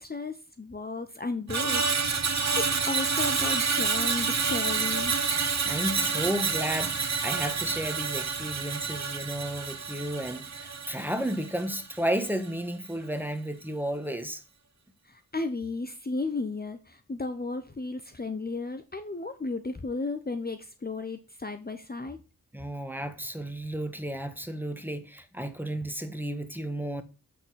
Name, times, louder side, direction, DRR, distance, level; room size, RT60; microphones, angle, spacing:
voice 1, 0.0-5.1 15.0-22.2, left 3 dB, 25° left, 0.9 m, -34 dB
Screech, 1.5-11.9 12.2-12.5, right 5 dB, 50° right, 1.2 m, -28 dB
voice 2, 5.6-14.4 22.5-27.0, right 1 dB, 5° right, 1.4 m, -33 dB
7.8 x 4.1 x 6.4 m
cardioid pair, 40°, 35 cm